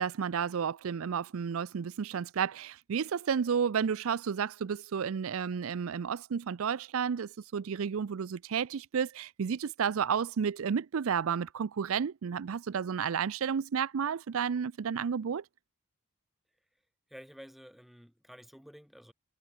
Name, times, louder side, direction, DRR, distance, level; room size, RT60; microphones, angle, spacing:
voice 1, 0.0-15.4, right 7 dB, 65° right, 0.4 m, -32 dB
voice 2, 17.1-19.1, equal, ahead, 2.7 m, -51 dB
head